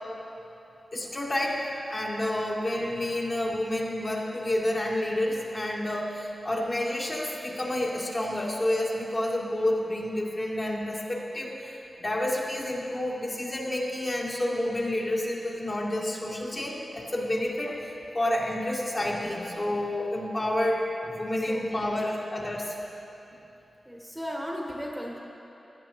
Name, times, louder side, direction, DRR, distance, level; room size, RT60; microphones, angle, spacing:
voice 1, 0.9-22.8, left 1 dB, 40° left, -4 dB, 1.9 m, -29 dB
voice 2, 21.5-21.9 23.9-25.2, equal, 5° right, -2 dB, 1.2 m, -36 dB
17.0 x 9.9 x 3.1 m, 3.0 s
wide cardioid pair, 75°, 0 cm